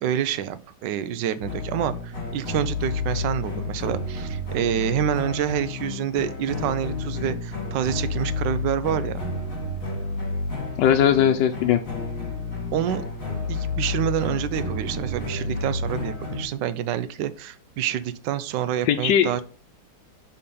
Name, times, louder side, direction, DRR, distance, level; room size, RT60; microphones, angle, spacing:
voice 1, 0.0-9.2 12.7-13.1 13.5-19.4, right 10 dB, 90° right, 13 dB, 1.2 m, -27 dB
sound 1, 1.4-16.4, left 3 dB, 50° left, 2.6 m, -30 dB
voice 2, 10.8-11.8 18.8-19.4, left 9 dB, 85° left, 5 dB, 1.2 m, -19 dB
5.0 x 4.3 x 5.3 m, 0.40 s
omnidirectional pair, 1.9 m